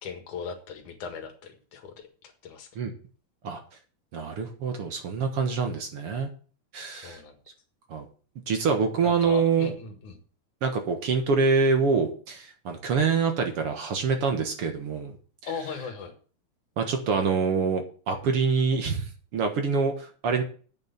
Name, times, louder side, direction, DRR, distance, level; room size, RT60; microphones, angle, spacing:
voice 1, 0.0-1.9 2.2-2.7 7.0-7.4 9.0-10.2 15.5-16.1, left 6 dB, 75° left, 6 dB, 3.1 m, -38 dB
voice 2, 4.1-6.3 6.7-7.2 7.9-8.1 8.5-9.7 10.6-15.1 15.4-15.5 16.8-20.4, right 5 dB, 55° right, 5 dB, 2.0 m, -25 dB
9.0 x 6.5 x 8.1 m, 0.40 s
omnidirectional pair, 3.5 m